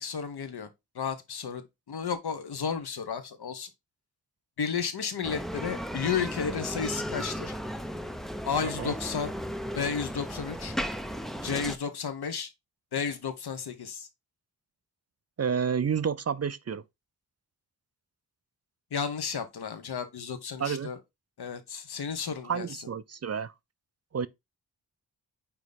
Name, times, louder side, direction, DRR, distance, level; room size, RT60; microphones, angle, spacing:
voice 1, 0.0-0.7 0.9-3.7 4.6-7.5 8.4-9.3 9.7-10.7 11.4-12.5 12.9-14.1 18.9-21.0 21.4-22.7, left 6 dB, 75° left, 1.3 m, -32 dB
Bicycle, 5.2-11.8, equal, ahead, 0.6 m, -35 dB
voice 2, 8.6-8.9 15.4-16.8 20.6-20.9 22.5-23.5 24.1-24.3, right 7 dB, 40° right, 0.5 m, -30 dB
9.0 x 3.1 x 4.0 m
wide cardioid pair, 115°, 39 cm